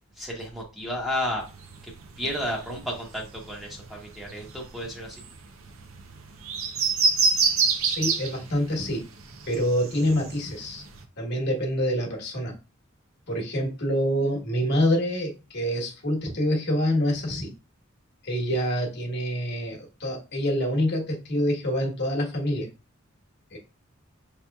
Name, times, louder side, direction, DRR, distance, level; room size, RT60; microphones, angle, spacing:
voice 1, 0.2-1.4 2.2-5.2, left 1 dB, ahead, -2 dB, 0.9 m, -32 dB
sound 1, 1.4-11.0, right 4 dB, 90° right, 0.6 m, -29 dB
voice 2, 7.8-9.0 9.4-10.8 11.2-12.5 13.3-17.5 18.2-22.7 23.5-23.6, equal, 55° left, 0 dB, 1.2 m, -26 dB
5.6 x 3.0 x 2.3 m, 0.30 s
head